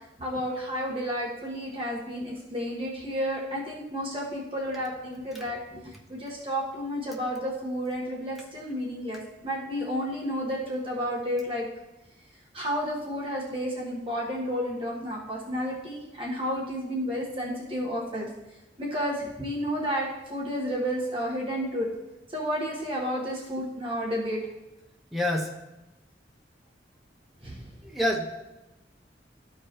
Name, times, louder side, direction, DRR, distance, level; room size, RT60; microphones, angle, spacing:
voice 1, 0.2-11.6 12.5-18.3 18.8-21.9 22.3-24.4 27.4-27.6, equal, 30° right, -4 dB, 1.5 m, -31 dB
voice 2, 25.1-25.5 27.8-28.3, left 1 dB, ahead, -2 dB, 0.8 m, -26 dB
13.5 x 4.7 x 3.1 m, 0.99 s
head